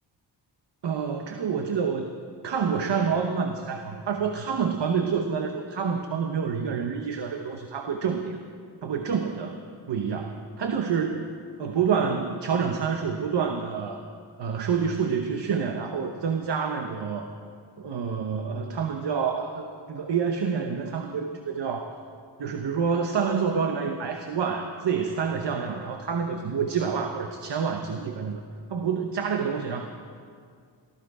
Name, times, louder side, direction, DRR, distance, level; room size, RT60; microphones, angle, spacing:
voice 1, 0.8-2.1 2.4-8.4 8.8-9.6 9.9-14.0 14.4-17.3 17.8-22.0 22.4-28.4 28.7-29.9, right 6 dB, 65° right, 5 dB, 1.0 m, -28 dB
17.5 x 14.5 x 4.8 m, 2.2 s
wide cardioid pair, 105°, 46 cm